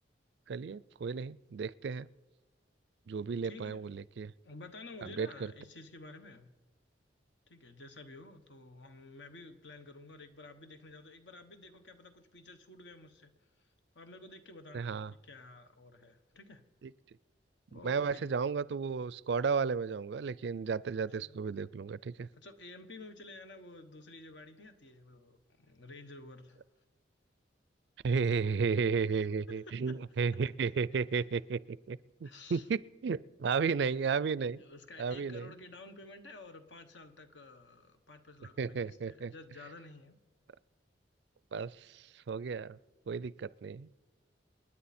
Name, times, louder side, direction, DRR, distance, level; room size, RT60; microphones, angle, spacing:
voice 1, 0.5-2.1 3.1-4.3 5.0-5.5 14.7-15.1 17.7-22.3 28.0-34.6 35.0-35.5 38.6-39.3 41.5-42.8 43.1-43.9, right 5 dB, 65° right, 20 dB, 0.4 m, -33 dB
voice 2, 3.4-3.9 4.4-6.5 7.5-16.6 17.7-18.4 21.2-21.4 22.3-26.7 29.5-30.0 31.1-31.2 32.2-32.7 34.6-40.2, left 2 dB, 70° left, 8 dB, 1.2 m, -52 dB
28.0 x 10.0 x 4.3 m, 1.2 s
head